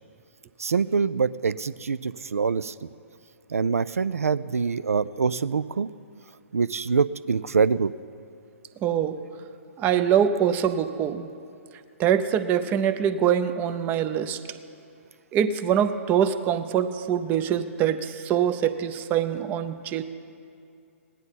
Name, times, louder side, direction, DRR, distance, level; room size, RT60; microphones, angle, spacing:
voice 1, 0.6-2.7 3.5-5.9 6.5-7.9, right 5 dB, 85° right, 17 dB, 0.3 m, -25 dB
voice 2, 8.8-9.2 9.8-11.3 12.0-14.4 15.3-20.0, right 9 dB, 25° right, 11 dB, 0.5 m, -24 dB
17.5 x 10.5 x 4.1 m, 2.5 s
figure-of-eight pair, 125°, 8 cm